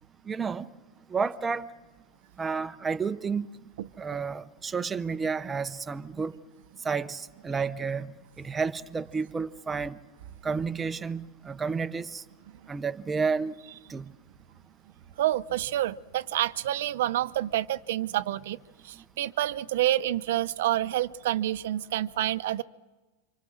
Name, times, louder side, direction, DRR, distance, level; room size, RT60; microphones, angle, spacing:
voice 1, 0.2-0.7 1.1-1.7 2.4-3.5 4.0-6.3 6.8-10.0 10.4-12.2 12.7-13.5 13.9-14.1, right 5 dB, 10° right, 0.7 m, -31 dB
voice 2, 15.2-18.6 18.8-22.6, right 13 dB, 70° right, 0.8 m, -28 dB
28.0 x 26.0 x 6.5 m
supercardioid pair, 155°, 0 cm